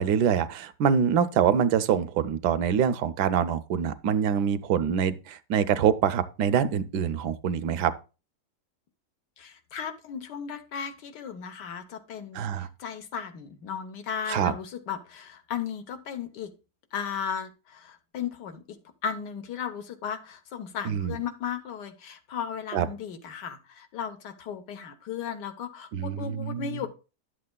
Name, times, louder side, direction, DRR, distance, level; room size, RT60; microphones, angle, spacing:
voice 1, 0.0-7.9 12.3-12.7 14.3-14.5 20.9-21.2 22.7-22.9 25.9-26.9, right 8 dB, 80° right, 1.2 m, -25 dB
voice 2, 9.4-16.5 16.9-26.9, left 7 dB, 90° left, 1.6 m, -36 dB
11.5 x 7.5 x 2.2 m
omnidirectional pair, 1.8 m